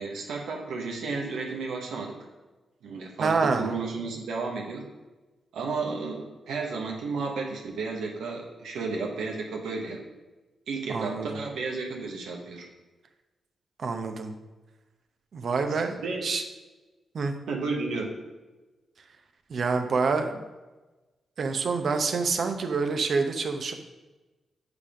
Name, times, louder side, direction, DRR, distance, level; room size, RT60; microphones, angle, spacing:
voice 1, 0.0-2.2 2.8-4.9 5.5-10.0 10.7-12.7 15.7-16.3 17.5-18.1, right 4 dB, 80° right, 0 dB, 1.1 m, -33 dB
voice 2, 3.2-3.7 10.9-11.4 13.8-14.3 15.3-16.0 16.2-16.4 17.1-17.3 19.5-20.4 21.4-23.7, right 4 dB, 65° right, 6 dB, 0.8 m, -27 dB
8.1 x 3.6 x 5.0 m, 1.2 s
supercardioid pair, 45°, 0 cm